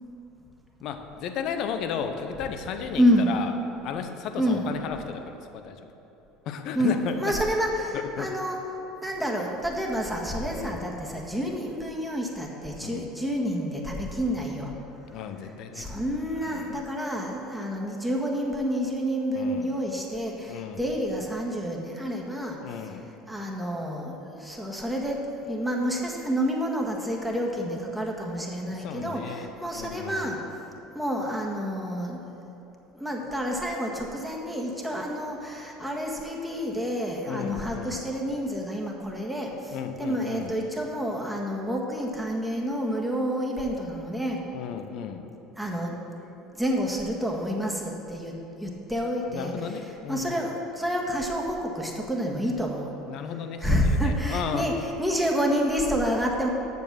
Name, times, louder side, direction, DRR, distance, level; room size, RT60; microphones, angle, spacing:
voice 1, 0.8-3.5 3.8-5.8 6.5-7.4 7.9-8.3 10.5-10.8 12.8-13.1 15.1-15.9 16.3-16.8 19.3-19.8 20.5-20.8 22.6-23.0 28.8-30.4 37.3-38.1 39.7-40.5 44.5-45.2 49.3-50.4 53.1-54.7, left 7 dB, 60° left, 7 dB, 0.8 m, -34 dB
voice 2, 3.0-3.3 4.4-4.6 6.7-8.6 9.0-14.7 15.7-22.6 23.3-30.4 30.9-32.5 32.9-44.4 45.6-46.2 46.5-49.5 50.1-52.9 53.6-54.7 55.0-56.5, equal, ahead, -1 dB, 1.6 m, -28 dB
8.2 x 6.7 x 6.3 m, 2.9 s
hypercardioid pair, 80°, 0 cm